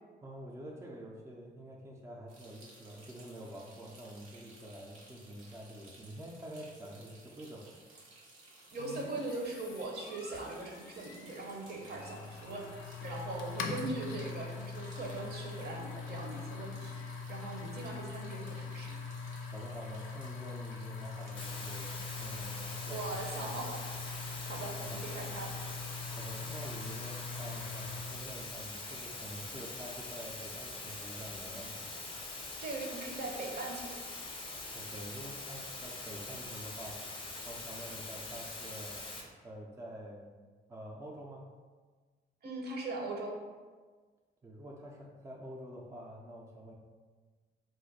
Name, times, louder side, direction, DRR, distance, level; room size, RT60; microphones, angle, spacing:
voice 1, 0.2-7.7 19.5-21.9 22.2-23.0 23.4-23.6 24.8-25.0 26.1-31.9 34.7-37.0 37.4-39.0 39.4-40.3 40.7-41.4 44.4-46.7, right 1 dB, 15° right, -2 dB, 0.4 m, -47 dB
sound 1, 2.3-21.9, right 2 dB, 85° right, 0.8 m, -57 dB
voice 2, 8.7-18.9 22.9-23.8 24.5-25.5 32.6-34.0 42.4-43.3, right 2 dB, 55° right, -1 dB, 0.7 m, -40 dB
sound 2, 8.8-28.3, left 4 dB, 80° left, 0.4 m, -43 dB
sound 3, 21.4-39.2, left 2 dB, 25° left, 0.6 m, -43 dB
2.4 x 2.2 x 4.0 m, 1.4 s
cardioid pair, 90°, 20 cm